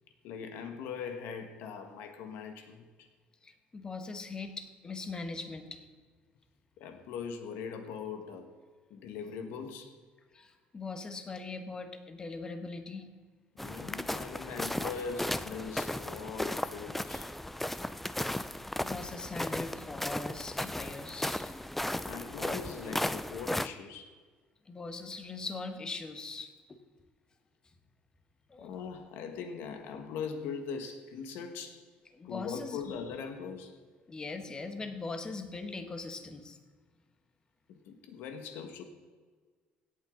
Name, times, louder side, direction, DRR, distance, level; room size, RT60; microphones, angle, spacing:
voice 1, 0.2-3.1 6.8-8.5 8.9-9.9 13.5-17.3 22.0-24.1 28.6-31.8 32.2-33.8 37.7-38.8, left 6 dB, 80° left, 6 dB, 1.6 m, -41 dB
voice 2, 3.4-5.9 10.3-13.1 18.3-18.4 18.8-21.5 24.6-26.5 28.5-28.7 32.1-32.8 34.1-36.6, left 3 dB, 20° left, 8 dB, 1.2 m, -41 dB
sound 1, 13.6-23.7, left 1 dB, 5° left, 0.4 m, -35 dB
17.0 x 8.4 x 3.9 m, 1.5 s
cardioid pair, 130°, 3 cm